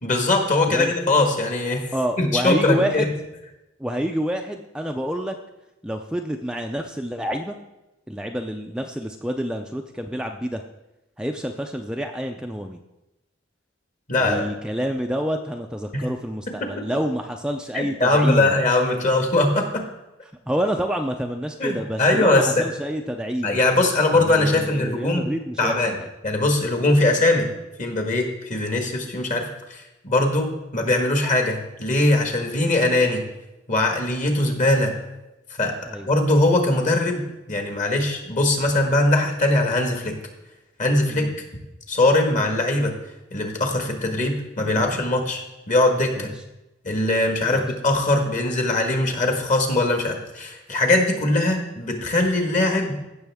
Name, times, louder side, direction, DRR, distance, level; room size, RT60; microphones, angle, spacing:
voice 1, 0.0-1.9 2.2-3.1 14.1-14.4 15.9-16.1 16.6-16.8 17.7-19.8 21.6-22.6 23.4-25.3 25.6-25.9 26.2-27.5 27.8-33.2 33.7-34.9 35.6-35.7 36.1-37.2 37.5-40.1 40.8-41.3 41.9-42.9 43.3-45.4 45.7-46.3 46.8-52.9, left 2 dB, 40° left, 3 dB, 1.5 m, -21 dB
voice 2, 1.9-3.1 3.8-5.4 5.8-7.5 8.1-10.6 11.2-12.8 14.2-18.6 20.5-23.6 24.1-26.1 35.8-36.1 41.1-41.3 46.1-46.3 47.5-47.7, equal, 5° right, 3 dB, 0.4 m, -28 dB
15.5 x 6.3 x 3.5 m, 0.95 s
head